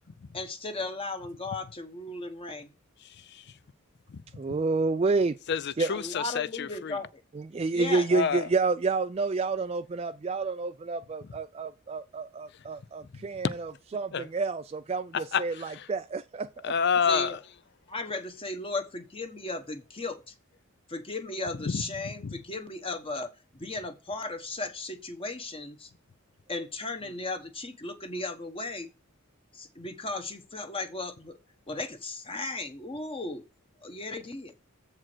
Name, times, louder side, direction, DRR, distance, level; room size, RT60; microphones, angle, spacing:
voice 1, 0.3-2.7 5.9-7.1 7.7-8.1 17.1-17.3 17.9-20.3 20.9-25.9 26.5-28.9 29.5-31.4 31.7-33.4 33.8-34.5, left 2 dB, 25° left, 1.2 m, -36 dB
voice 2, 3.0-3.6 4.1-4.2 5.5-7.0 8.1-8.5 11.3-11.4 12.5-12.6 13.0-13.1 13.4-13.6 14.1-14.3 15.1-15.9 16.6-17.4 21.5-22.4, left 6 dB, 55° left, 0.5 m, -30 dB
voice 3, 4.3-5.4 5.8-5.9 7.3-16.6, right 3 dB, 30° right, 0.3 m, -29 dB
7.5 x 4.8 x 6.1 m
head